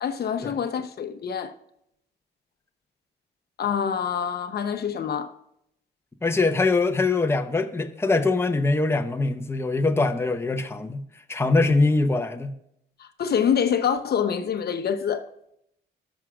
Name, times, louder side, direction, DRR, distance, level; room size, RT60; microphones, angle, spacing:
voice 1, 0.0-1.5 3.6-5.4 13.0-15.3, left 8 dB, 55° left, 0.9 m, -26 dB
voice 2, 6.2-11.0 11.3-12.5, left 3 dB, 10° left, 0.8 m, -23 dB
14.5 x 6.2 x 2.4 m
cardioid pair, 90°, 20 cm